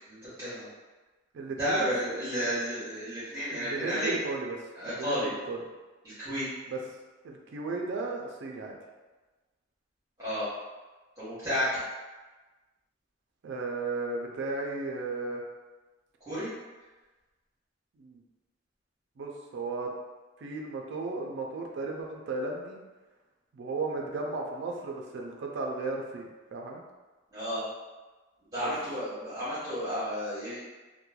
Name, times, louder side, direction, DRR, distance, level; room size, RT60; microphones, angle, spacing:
voice 1, 0.1-0.7 1.6-4.1 4.7-5.3 6.0-6.4 10.2-10.5 11.2-11.7 16.2-16.5 27.3-27.6 28.5-30.6, equal, 20° right, -14 dB, 1.0 m, -32 dB
voice 2, 1.3-2.2 2.4-2.5 3.5-4.6 5.0-5.6 6.7-6.8 7.2-8.8 13.4-15.4 18.0-18.2 19.2-19.9 20.4-22.8 23.5-26.8 28.6-28.7, right 3 dB, 65° right, 0 dB, 0.3 m, -35 dB
3.0 x 2.1 x 2.2 m, 1.2 s
head